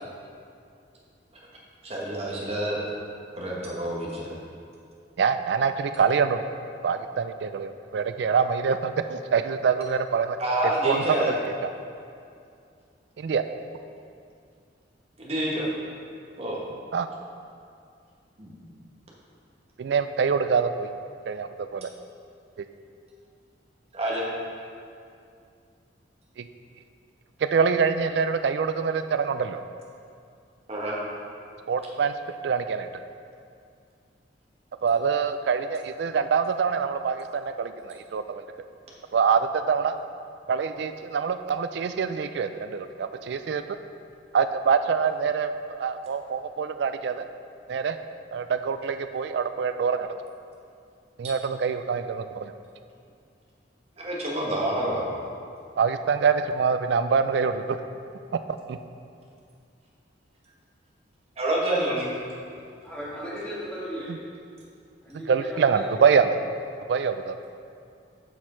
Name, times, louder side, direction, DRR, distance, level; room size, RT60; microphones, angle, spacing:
voice 1, 1.8-2.8 3.4-4.3 10.4-11.3 15.2-15.7 16.4-16.6 18.4-18.6 23.9-24.3 30.7-31.0 54.0-55.1 61.4-62.1, right 1 dB, 35° right, -5 dB, 1.5 m, -27 dB
voice 2, 5.2-6.4 6.8-10.4 10.8-11.0 13.2-13.4 16.9-17.1 19.8-20.9 21.3-21.9 26.4-26.5 27.4-29.6 31.7-32.1 32.4-32.9 34.8-38.4 39.1-39.9 40.5-43.6 44.3-45.5 45.8-47.3 47.7-48.0 48.3-50.1 51.2-52.5 55.8-57.8 58.7-58.8 65.3-66.4 66.9-67.4, right 6 dB, 60° right, 9 dB, 0.3 m, -25 dB
voice 3, 62.5-64.1 65.0-66.2, equal, 5° left, -9 dB, 1.8 m, -37 dB
7.2 x 6.2 x 4.4 m, 2.4 s
head